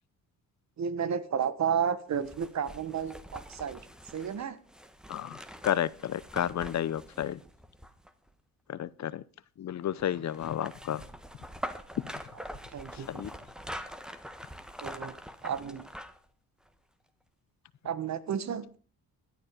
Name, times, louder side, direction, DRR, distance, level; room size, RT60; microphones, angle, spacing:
voice 1, 0.8-3.8 4.1-4.6 12.7-13.1 14.8-15.1 15.4-15.9 17.8-18.6, right 7 dB, 50° right, 1.4 m, -32 dB
sound 1, 2.1-8.3 10.0-16.3 16.7-16.8, equal, ahead, 1.4 m, -44 dB
voice 2, 5.6-7.4 8.7-9.2 9.6-11.0 12.0-12.1 12.9-13.3, left 10 dB, 50° left, 0.8 m, -31 dB
17.0 x 11.5 x 5.2 m
cardioid pair, 120°, 35 cm